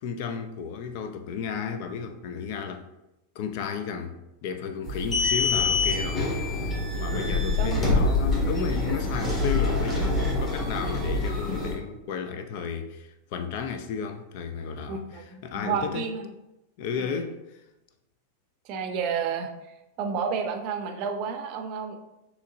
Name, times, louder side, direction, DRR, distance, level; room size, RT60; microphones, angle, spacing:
voice 1, 0.0-2.9 3.4-6.4 6.9-16.0 16.8-17.6, left 6 dB, 50° left, 0.4 m, -33 dB
sound 1, 4.8-11.7, left 3 dB, 20° left, 1.5 m, -25 dB
voice 2, 14.9-16.2 17.0-17.2 18.6-19.5 20.0-22.0, right 6 dB, 40° right, 0.6 m, -30 dB
6.2 x 3.1 x 2.6 m
figure-of-eight pair, 90°, 0 cm